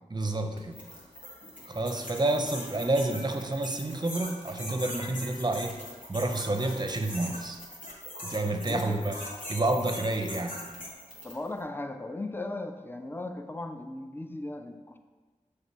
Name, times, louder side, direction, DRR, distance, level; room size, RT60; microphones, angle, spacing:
voice 1, 0.1-0.8 1.7-5.8 6.1-7.6 8.2-9.2 9.5-10.7, right 2 dB, 30° right, 6 dB, 0.6 m, -29 dB
sound 1, 0.6-11.5, left 1 dB, 80° left, 1.4 m, -41 dB
voice 2, 8.6-9.0 11.2-15.0, left 2 dB, 15° left, 6 dB, 0.4 m, -37 dB
6.9 x 3.3 x 4.5 m, 1.3 s
wide cardioid pair, 55°, 13 cm